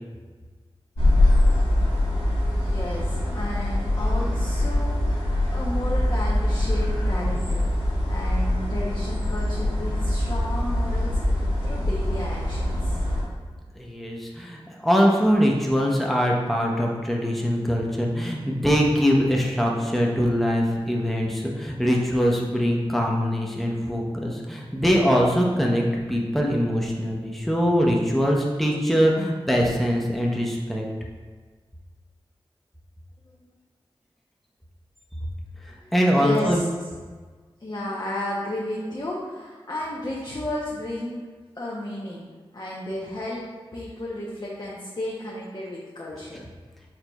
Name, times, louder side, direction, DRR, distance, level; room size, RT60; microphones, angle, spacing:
sound 1, 1.0-13.2, left 1 dB, 85° left, 1.4 m, -23 dB
voice 1, 2.5-7.7 8.1-13.0 33.3-33.5 35.7-36.7 37.6-41.2 41.5-42.2 42.5-43.4 43.7-46.4, left 1 dB, 45° left, -6 dB, 0.7 m, -33 dB
voice 2, 13.8-30.9 35.6-36.6, equal, ahead, -1 dB, 0.6 m, -22 dB
4.5 x 3.9 x 2.3 m, 1.4 s
cardioid pair, 45°, 10 cm